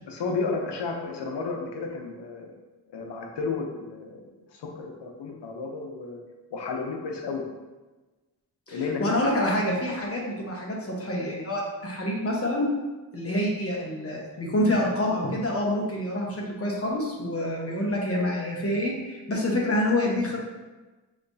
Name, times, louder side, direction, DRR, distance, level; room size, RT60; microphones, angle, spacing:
voice 1, 0.1-2.5 2.9-6.2 6.5-7.4 8.7-9.0, left 4 dB, 85° left, 1 dB, 0.8 m, -32 dB
voice 2, 8.7-12.7 13.1-20.4, left 1 dB, 35° left, -2 dB, 1.1 m, -27 dB
5.7 x 3.1 x 2.7 m, 1.2 s
cardioid pair, 90°, 40 cm